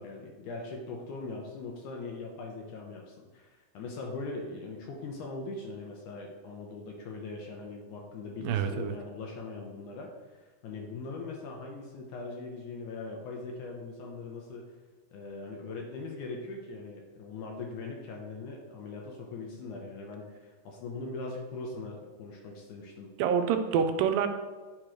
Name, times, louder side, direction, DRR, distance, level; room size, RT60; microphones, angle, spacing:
voice 1, 0.0-14.7 15.1-23.1, left 3 dB, 75° left, 0 dB, 2.1 m, -41 dB
voice 2, 8.4-8.9 23.2-24.3, right 7 dB, 90° right, 7 dB, 2.3 m, -26 dB
8.9 x 3.1 x 4.9 m, 1.3 s
omnidirectional pair, 3.9 m